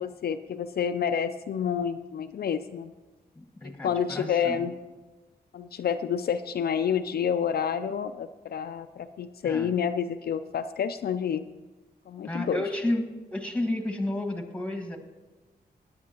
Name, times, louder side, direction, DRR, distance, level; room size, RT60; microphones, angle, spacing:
voice 1, 0.0-2.9 3.6-4.7 5.5-11.5 12.1-12.6, left 7 dB, 70° left, 9 dB, 0.4 m, -29 dB
voice 2, 3.3-4.7 9.4-9.7 12.2-13.0 13.3-15.0, left 1 dB, 5° left, 4 dB, 1.6 m, -31 dB
17.0 x 9.6 x 2.9 m, 1.2 s
cardioid pair, 85°, 17 cm